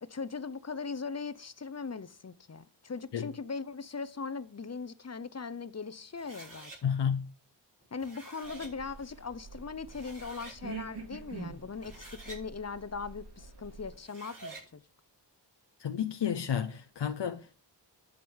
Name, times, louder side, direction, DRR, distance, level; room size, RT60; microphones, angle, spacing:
voice 1, 0.0-6.9 7.9-14.8, left 5 dB, 35° left, 0.8 m, -40 dB
sound 1, 6.2-6.8 7.8-8.7 9.5-9.6 9.9-10.6 11.7-12.4 13.9-14.7, right 2 dB, 45° right, 5.6 m, -48 dB
voice 2, 6.8-7.3 15.8-17.5, left 8 dB, 75° left, 0.7 m, -31 dB
sound 2, 8.4-13.9, right 4 dB, 60° right, 3.9 m, -46 dB
11.0 x 5.3 x 7.2 m
wide cardioid pair, 70°, 44 cm